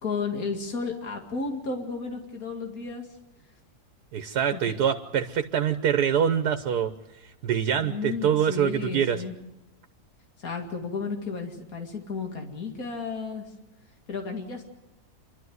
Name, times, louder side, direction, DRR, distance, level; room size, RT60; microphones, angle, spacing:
voice 1, 0.0-3.1 4.5-4.8 7.8-9.3 10.4-13.5 14.1-14.7, left 4 dB, 65° left, 2 dB, 2.7 m, -33 dB
voice 2, 4.1-6.9 7.4-9.2, right 8 dB, 85° right, 9 dB, 1.5 m, -25 dB
28.0 x 12.5 x 9.5 m, 0.97 s
omnidirectional pair, 1.7 m